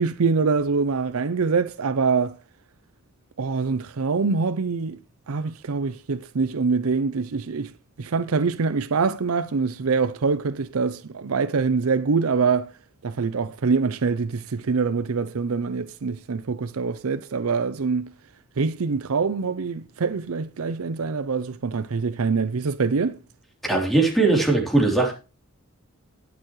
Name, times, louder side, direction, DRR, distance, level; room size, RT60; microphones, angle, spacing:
voice 1, 0.0-2.4 3.4-5.0 5.3-7.7 8.0-12.7 13.0-18.1 18.6-23.2, right 4 dB, 80° right, 0.6 m, -24 dB
voice 2, 23.6-25.1, right 3 dB, ahead, 3.4 m, -20 dB
20.0 x 6.8 x 3.1 m
head